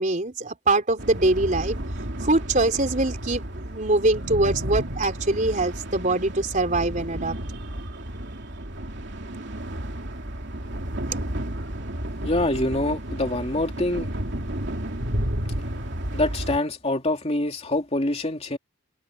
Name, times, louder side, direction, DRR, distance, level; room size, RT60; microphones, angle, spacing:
voice 1, 0.0-1.8 2.2-7.4, right 2 dB, 40° right, 3.7 m, -23 dB
sound 1, 1.0-16.6, right 1 dB, 55° right, 3.0 m, -32 dB
voice 2, 12.2-14.1 16.1-18.6, left 1 dB, 30° left, 2.7 m, -25 dB
head